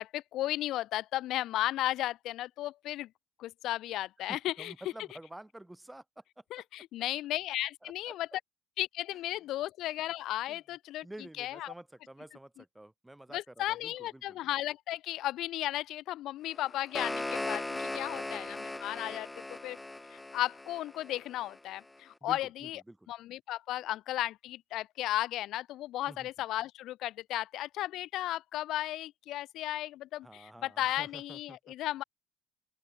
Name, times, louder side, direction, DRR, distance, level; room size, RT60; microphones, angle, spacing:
voice 1, 0.0-3.1 3.4-4.7 6.5-8.3 8.8-11.1 11.4-11.7 13.3-19.8 20.1-22.8 23.1-32.0, left 14 dB, 70° left, 0.8 m, -35 dB
voice 2, 4.2-6.6 7.8-8.4 10.5-10.6 11.0-14.4 17.9-18.5 22.2-23.1 23.8-23.9 26.1-26.3 30.2-31.7, right 1 dB, 5° right, 3.2 m, -50 dB
sound 1, 16.5-21.6, left 2 dB, 10° left, 0.6 m, -38 dB
open air
cardioid pair, 105°, 0 cm